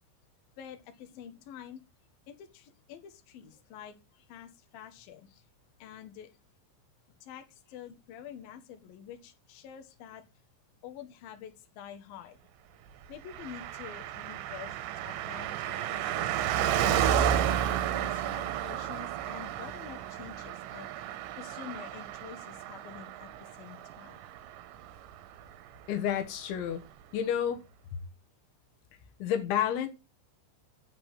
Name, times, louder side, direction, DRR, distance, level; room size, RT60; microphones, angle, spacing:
voice 1, 0.6-1.8 2.3-4.0 4.3-5.3 5.8-6.3 7.2-10.2 10.8-12.4 13.1-17.1 17.6-24.2, left 9 dB, 60° left, 3.0 m, -47 dB
Car passing by, 13.3-25.1 25.4-25.5, right 10 dB, 80° right, 3.2 m, -32 dB
voice 2, 25.9-26.8 27.1-27.6 27.9-28.0 29.2-29.9, left 9 dB, 85° left, 3.8 m, -30 dB
9.3 x 8.0 x 9.1 m
omnidirectional pair, 5.2 m